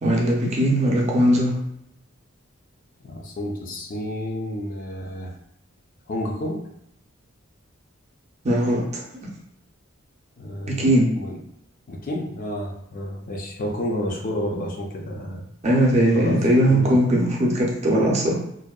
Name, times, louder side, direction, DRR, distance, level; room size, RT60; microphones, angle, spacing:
voice 1, 0.0-1.6 8.4-9.0 10.7-11.1 15.6-18.3, right 1 dB, 35° right, -2 dB, 0.5 m, -19 dB
voice 2, 3.0-5.3 6.1-6.7 10.4-11.4 11.9-15.4 15.8-16.9, left 1 dB, 45° left, 0 dB, 0.4 m, -30 dB
2.6 x 2.1 x 2.3 m, 0.77 s
head